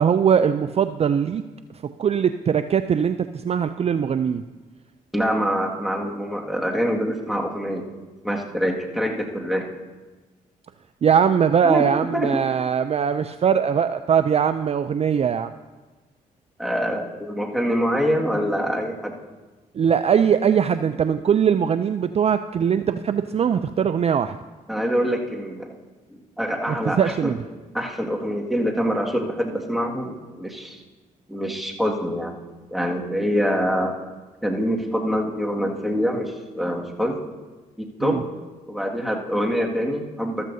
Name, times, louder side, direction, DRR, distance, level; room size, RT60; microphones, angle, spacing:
voice 1, 0.0-1.4 1.8-4.4 11.0-15.5 19.8-24.4 27.0-27.4 38.0-38.2, right 7 dB, 40° right, 11 dB, 0.4 m, -21 dB
voice 2, 5.1-7.9 8.2-9.7 11.6-11.8 12.1-12.3 16.6-19.2 24.7-25.7 26.1-27.3 27.7-30.8 31.3-32.3 32.7-33.9 34.4-37.2 37.8-38.2 38.7-40.5, equal, ahead, 0 dB, 1.9 m, -25 dB
14.0 x 13.5 x 2.7 m, 1.2 s
supercardioid pair, 65°, 16 cm